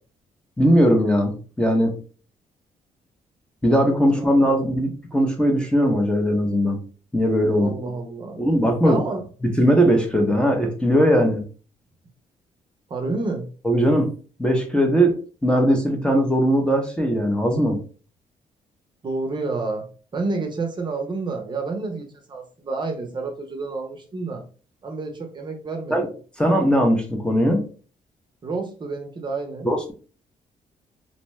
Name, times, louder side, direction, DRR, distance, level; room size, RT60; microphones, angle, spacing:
voice 1, 0.6-2.0 3.6-6.8 7.1-7.7 8.4-9.0 9.6-11.5 13.6-14.1 14.4-17.8 25.9-26.1 26.4-27.7 29.6-29.9, equal, 5° left, 2 dB, 0.6 m, -19 dB
voice 2, 4.1-4.6 7.6-8.4 8.8-9.2 12.9-13.5 19.0-19.9 20.1-24.5 24.8-26.1 28.4-29.7, right 3 dB, 35° right, 3 dB, 0.6 m, -29 dB
2.6 x 2.1 x 3.0 m, 0.38 s
cardioid pair, 105°, 14 cm